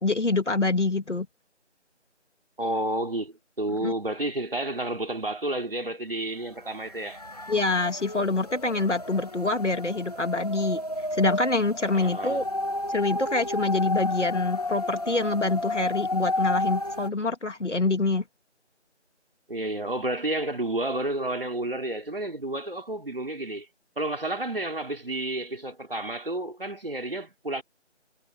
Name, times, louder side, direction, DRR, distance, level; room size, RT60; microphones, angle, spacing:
voice 1, 0.0-1.3 3.8-3.9 7.5-10.8 11.1-12.4 12.9-18.2, left 3 dB, 80° left, 2.3 m, -26 dB
voice 2, 2.6-7.2 11.9-12.4 19.5-23.7 24.0-27.6, right 1 dB, 50° right, 3.5 m, -31 dB
sound 1, 6.5-6.6 6.8-17.1, left 1 dB, 35° left, 2.4 m, -31 dB
figure-of-eight pair, 180°, 36 cm